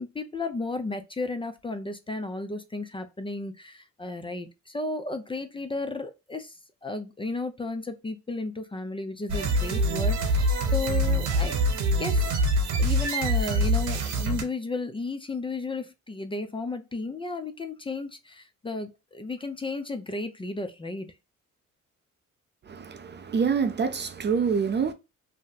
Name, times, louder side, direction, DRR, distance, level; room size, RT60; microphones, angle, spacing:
voice 1, 0.0-11.6 12.0-12.3 12.8-21.1, left 3 dB, 15° left, 0.4 m, -34 dB
sound 1, 9.3-14.4, equal, 75° right, 1.1 m, -24 dB
voice 2, 22.7-24.9, right 6 dB, 35° right, 0.5 m, -26 dB
2.7 x 2.1 x 3.7 m
cardioid pair, 90°, 30 cm